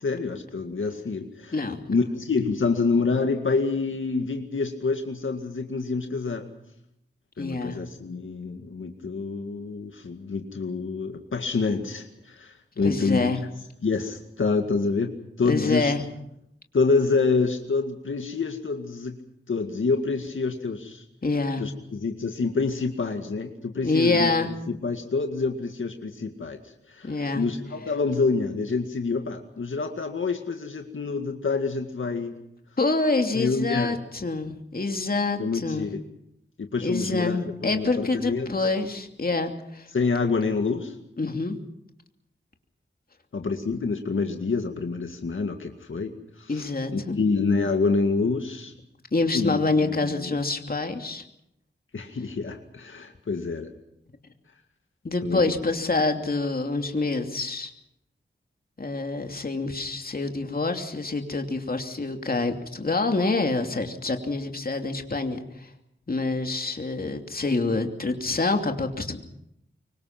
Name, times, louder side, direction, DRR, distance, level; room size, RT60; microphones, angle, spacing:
voice 1, 0.0-1.6 1.9-6.5 7.4-13.3 13.8-15.1 15.4-15.9 16.7-19.2 19.5-21.0 21.6-24.3 24.7-26.6 26.9-32.3 33.3-34.0 35.4-36.0 36.6-38.5 39.9-41.0 43.3-46.7 46.9-48.7 49.3-50.4 51.9-53.7 55.2-55.4, left 4 dB, 75° left, 4 dB, 2.1 m, -27 dB
voice 2, 7.4-7.8 12.8-13.4 15.4-16.0 21.2-21.6 23.8-24.5 27.0-27.4 32.8-35.9 36.8-39.9 41.2-41.6 46.5-47.2 49.1-51.2 55.0-57.7 58.8-65.7 66.1-69.2, left 3 dB, 45° left, 4 dB, 2.8 m, -26 dB
25.0 x 24.0 x 6.0 m, 0.79 s
wide cardioid pair, 80°, 20 cm